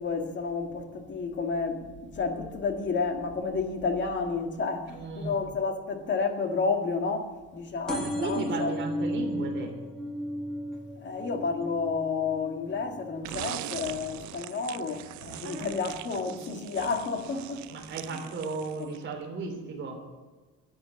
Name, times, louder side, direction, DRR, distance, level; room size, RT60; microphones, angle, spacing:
voice 1, 0.0-8.7 11.0-18.2 18.8-18.9, left 4 dB, 35° left, 1.8 m, -31 dB
voice 2, 4.9-5.4 7.9-9.7 15.4-15.7 17.7-20.0, right 3 dB, 35° right, 3.4 m, -35 dB
sound 1, 7.9-15.1 15.6-16.1 16.9-17.0 17.2-17.3 17.5-17.6, equal, ahead, 1.8 m, -36 dB
sound 2, 13.2-19.1, right 16 dB, 60° right, 0.5 m, -41 dB
14.0 x 8.8 x 8.6 m
cardioid pair, 160°, 32 cm